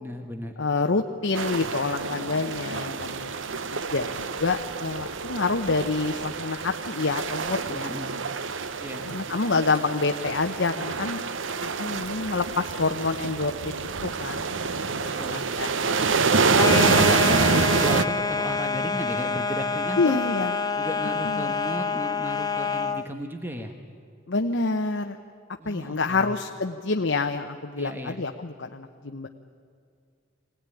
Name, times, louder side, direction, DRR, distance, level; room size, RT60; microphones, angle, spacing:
voice 1, 0.0-0.5 7.6-8.1 8.8-9.0 15.0-15.4 16.6-20.2 20.7-23.7 25.6-26.3 27.8-28.2, equal, 10° right, 5 dB, 1.3 m, -34 dB
voice 2, 0.6-3.4 3.7-7.9 9.1-11.2 11.6-14.5 14.9-15.7 16.7-17.1 20.0-20.5 21.2-21.5 24.3-25.2 25.7-29.3, left 3 dB, 65° left, 4 dB, 0.9 m, -27 dB
sound 1, 1.3-18.0, right 4 dB, 70° right, 0.8 m, -27 dB
sound 2, 16.5-23.1, left 4 dB, 20° left, 0.7 m, -27 dB
24.0 x 18.0 x 10.0 m, 2.2 s
head